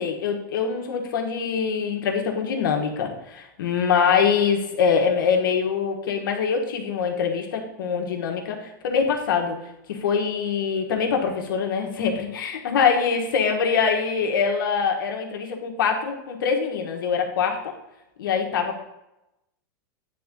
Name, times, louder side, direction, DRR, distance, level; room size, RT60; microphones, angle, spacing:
voice 1, 0.0-9.6 9.9-17.6 18.2-18.8, left 6 dB, 80° left, 2 dB, 1.4 m, -24 dB
9.3 x 3.7 x 3.8 m, 0.91 s
supercardioid pair, 145°, 11 cm